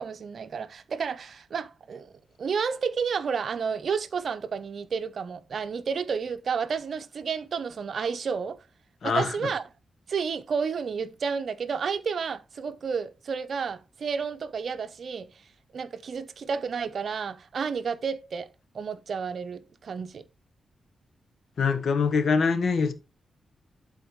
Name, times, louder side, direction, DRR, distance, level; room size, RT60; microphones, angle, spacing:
voice 1, 0.0-2.1 2.4-8.6 9.0-9.6 10.1-15.3 15.7-18.5 18.7-20.2, right 6 dB, 65° right, 0.7 m, -31 dB
voice 2, 9.0-9.3 21.6-22.9, left 5 dB, 70° left, 1.2 m, -24 dB
11.0 x 4.4 x 3.1 m
cardioid pair, 65°, 0 cm